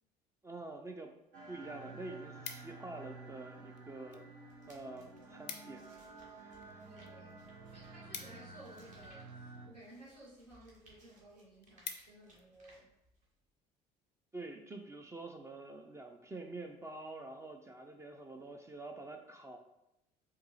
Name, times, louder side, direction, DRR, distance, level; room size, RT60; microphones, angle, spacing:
voice 1, 0.4-1.1 1.5-4.3 4.7-6.0 6.4-6.8 14.3-19.6, right 2 dB, 15° right, 4 dB, 0.4 m, -47 dB
sound 1, 1.3-9.7, right 3 dB, 55° right, 0.8 m, -52 dB
sound 2, 2.0-3.0 3.7-4.3 4.6-4.7 4.9-5.0 5.3-5.9 6.2-9.1 9.8-10.1 10.6-10.7 11.1-11.2 11.5-12.5 12.9-13.2, left 7 dB, 80° left, 0.4 m, -48 dB
sound 3, 4.4-13.5, right 1 dB, 35° right, 1.2 m, -66 dB
voice 2, 6.8-12.9, right 1 dB, 85° right, -7 dB, 1.5 m, -57 dB
4.5 x 2.7 x 3.0 m, 0.89 s
figure-of-eight pair, 55°, 21 cm